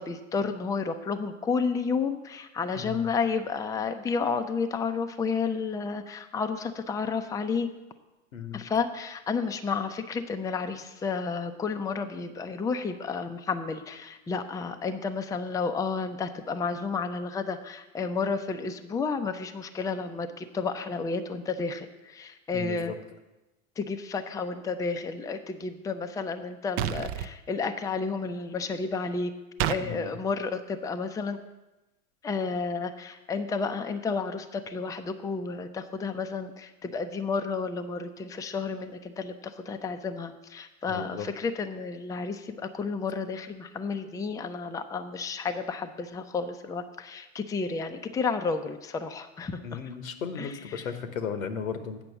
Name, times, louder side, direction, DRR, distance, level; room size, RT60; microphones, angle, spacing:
voice 1, 0.0-7.7 8.5-22.9 23.8-29.3 29.7-31.4 32.2-49.8 50.4-50.9, left 5 dB, 10° left, 8 dB, 0.5 m, -31 dB
voice 2, 2.7-3.1 8.3-8.6 22.5-22.9 29.8-30.2 40.9-41.3 49.6-52.0, left 6 dB, 80° left, 9 dB, 1.1 m, -35 dB
sound 1, 26.8-27.3 29.6-29.8, right 11 dB, 50° right, 0.6 m, -28 dB
8.6 x 5.9 x 6.8 m, 1.0 s
hypercardioid pair, 90°, 40 cm